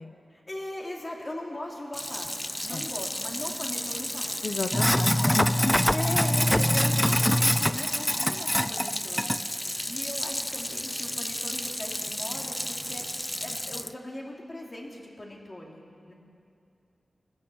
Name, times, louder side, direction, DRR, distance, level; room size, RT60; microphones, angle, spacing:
voice 1, 0.3-4.4 5.0-5.4 5.9-13.0 13.4-16.1, left 1 dB, 30° left, -1 dB, 3.1 m, -39 dB
Sink (filling or washing), 1.9-13.9, left 1 dB, 5° left, 0.4 m, -27 dB
voice 2, 4.4-5.7, left 4 dB, 65° left, 6 dB, 0.7 m, -33 dB
25.0 x 15.0 x 7.0 m, 2.5 s
wide cardioid pair, 120°, 0 cm